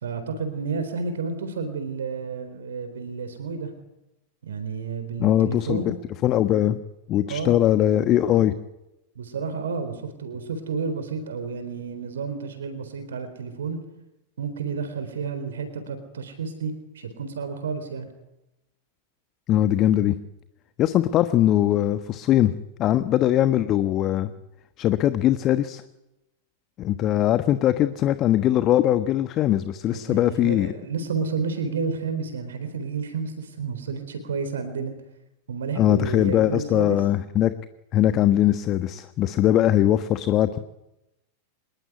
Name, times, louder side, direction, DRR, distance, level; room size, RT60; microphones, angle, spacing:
voice 1, 0.0-3.7 4.4-5.9 7.3-7.6 9.2-13.8 14.4-18.1 29.9-34.9 35.5-37.0, right 5 dB, 65° right, 9 dB, 4.0 m, -31 dB
voice 2, 5.2-5.9 6.2-6.8 7.1-8.5 19.5-20.2 20.8-22.5 22.8-24.3 24.8-25.8 26.8-30.7 35.8-37.5 37.9-40.6, left 12 dB, 35° left, 12 dB, 1.2 m, -21 dB
26.0 x 21.5 x 9.5 m, 0.92 s
figure-of-eight pair, 90°, 0 cm